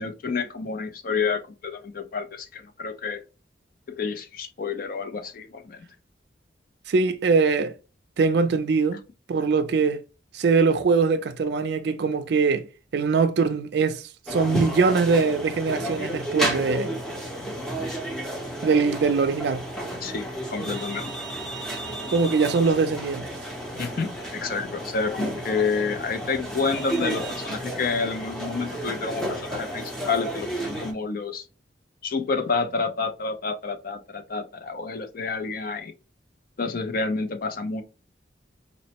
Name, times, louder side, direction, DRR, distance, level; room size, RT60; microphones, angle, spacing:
voice 1, 0.0-3.2 3.9-5.9 20.0-21.1 23.8-31.4 32.0-35.9 36.6-37.8, left 4 dB, 50° left, 0.4 m, -29 dB
voice 2, 6.9-7.7 8.2-9.0 9.3-10.0 10.3-12.7 12.9-14.0 14.3-16.9 18.6-19.6 22.1-23.2, right 4 dB, 60° right, 0.4 m, -22 dB
sound 1, 14.3-30.9, right 1 dB, 5° left, 0.6 m, -32 dB
4.1 x 2.0 x 2.8 m
head